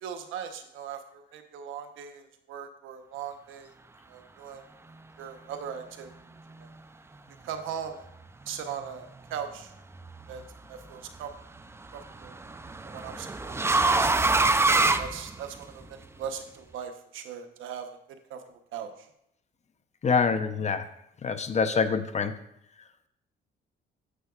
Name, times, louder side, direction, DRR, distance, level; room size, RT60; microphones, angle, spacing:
voice 1, 0.0-3.7 4.1-4.6 5.2-6.1 6.6-6.7 7.4-8.1 8.5-9.7 10.3-10.4 10.7-11.3 11.9-12.5 12.8-14.3 15.0-18.0 18.3-19.1, right 8 dB, 85° right, 7 dB, 0.9 m, -39 dB
sound 1, 9.9-10.4 11.8-15.8, right 3 dB, 15° right, 0.4 m, -25 dB
voice 2, 20.0-20.9 21.2-22.3, left 5 dB, 35° left, 10 dB, 0.7 m, -25 dB
9.9 x 7.6 x 2.4 m, 0.76 s
cardioid pair, 90°, 20 cm